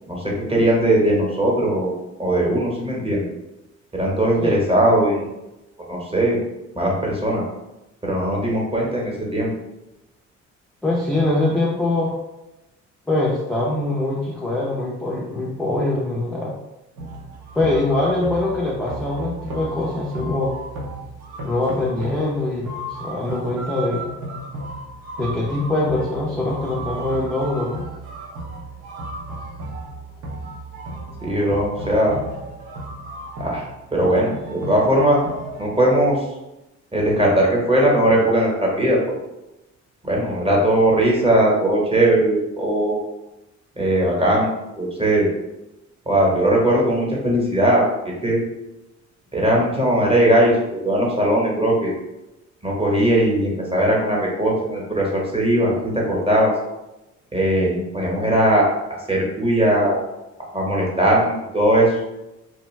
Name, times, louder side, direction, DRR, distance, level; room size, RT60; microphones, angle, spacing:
voice 1, 0.1-1.9 2.2-3.2 3.9-5.2 5.9-6.4 6.7-7.4 8.0-9.5 31.2-32.2 33.4-33.6 33.9-35.2 35.6-36.2 36.9-39.0 40.0-43.0 43.8-45.3 46.1-47.8 48.2-48.4 49.3-50.6 50.8-51.9 52.6-56.5 57.3-58.6 59.1-60.0 60.5-61.9, right 1 dB, 20° right, -3 dB, 1.0 m, -19 dB
voice 2, 10.8-12.2 13.1-16.5 17.5-20.5 21.4-22.7 23.0-24.0 25.2-27.8, left 2 dB, 5° left, -5 dB, 0.5 m, -23 dB
sound 1, 17.0-35.7, right 1 dB, 80° right, 0.9 m, -34 dB
2.6 x 2.2 x 3.1 m, 0.97 s
cardioid pair, 90°, 30 cm